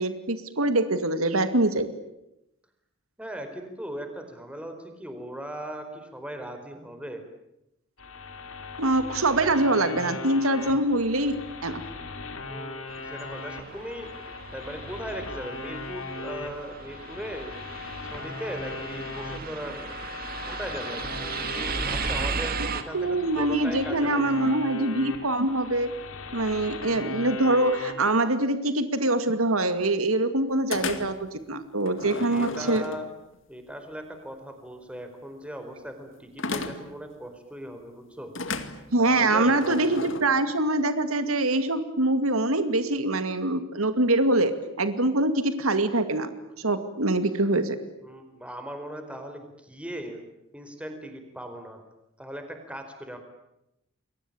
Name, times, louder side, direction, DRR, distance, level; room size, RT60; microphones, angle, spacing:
voice 1, 0.0-1.9 8.8-11.8 22.9-25.9 26.3-32.8 38.9-47.8, right 2 dB, 90° right, 10 dB, 2.3 m, -24 dB
voice 2, 3.2-7.2 12.5-14.1 14.5-17.5 18.1-20.0 20.5-24.2 32.0-33.1 33.5-38.3 39.0-39.6 48.0-50.2 50.5-51.8 52.2-53.2, equal, 5° right, 6 dB, 4.5 m, -38 dB
sound 1, 8.0-27.9, left 3 dB, 80° left, 3.9 m, -39 dB
sound 2, 12.9-22.8, right 5 dB, 45° right, 2.2 m, -35 dB
sound 3, 30.7-31.3 31.9-33.3 36.4-37.0 38.3-40.2, left 3 dB, 60° left, 2.3 m, -34 dB
29.5 x 22.5 x 8.7 m, 0.86 s
head